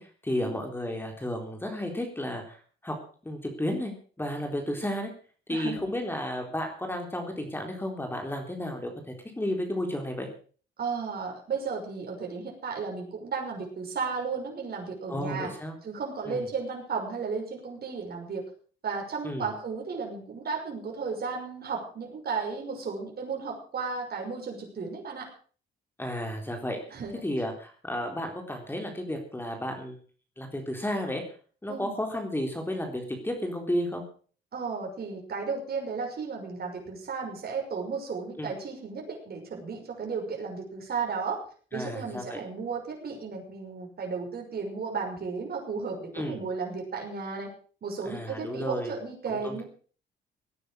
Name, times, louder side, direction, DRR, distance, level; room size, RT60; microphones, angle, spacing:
voice 1, 0.0-3.0 3.2-3.9 4.2-5.1 5.5-8.9 9.4-10.3 15.1-15.8 16.3-16.4 19.2-19.5 26.0-30.0 30.4-31.2 31.6-34.0 38.4-38.5 41.7-42.4 46.1-46.4 48.0-48.9 49.3-49.6, left 1 dB, 10° left, 3 dB, 3.9 m, -32 dB
voice 2, 5.5-5.9 10.8-15.5 15.8-18.4 18.8-25.3 26.9-27.1 31.7-31.9 34.5-41.4 41.7-47.5 47.8-49.6, right 5 dB, 50° right, 1 dB, 6.0 m, -34 dB
18.0 x 9.9 x 6.5 m, 0.43 s
cardioid pair, 90°, 20 cm